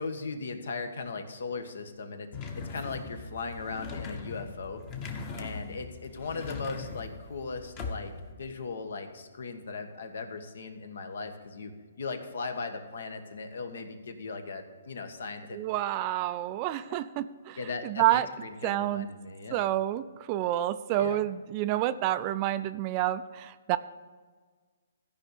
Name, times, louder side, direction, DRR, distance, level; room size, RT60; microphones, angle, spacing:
voice 1, 0.0-2.3 2.5-4.8 5.4-8.1 8.4-15.6 17.6-19.6 21.0-21.2, left 4 dB, 70° left, 7 dB, 1.4 m, -38 dB
sound 1, 2.3-8.3, left 4 dB, 25° left, 1.0 m, -40 dB
voice 2, 15.5-17.6 17.8-18.3 18.6-19.1 19.5-23.8, right 14 dB, 25° right, 13 dB, 0.3 m, -29 dB
14.0 x 5.3 x 6.7 m, 1.5 s
hypercardioid pair, 160°, 0 cm